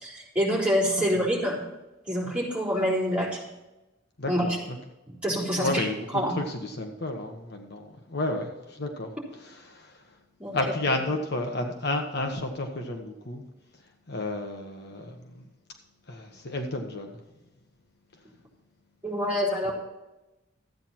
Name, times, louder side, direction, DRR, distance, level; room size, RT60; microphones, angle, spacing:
voice 1, 0.0-1.6 2.1-3.5 4.3-4.6 5.2-5.8 6.1-6.3 10.4-10.6 19.0-19.7, equal, 5° right, -5 dB, 3.8 m, -26 dB
voice 2, 4.2-4.8 5.6-9.1 9.4-10.0 10.5-13.4 14.1-15.4 16.1-17.2 19.6-19.7, left 2 dB, 60° left, 4 dB, 1.3 m, -31 dB
13.0 x 9.1 x 4.4 m, 1.0 s
head